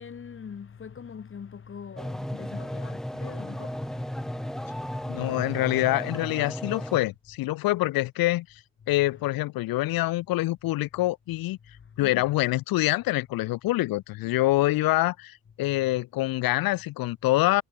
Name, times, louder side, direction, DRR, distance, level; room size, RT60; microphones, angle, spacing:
voice 1, 0.0-5.6 9.1-9.3 12.0-12.3 15.7-16.0, left 7 dB, 35° left, 1.7 m, -43 dB
sound 1, 2.0-7.0, equal, ahead, 0.5 m, -34 dB
voice 2, 5.1-8.5 8.9-11.6 12.0-17.6, left 18 dB, 75° left, 1.2 m, -25 dB
supercardioid pair, 80°, 36 cm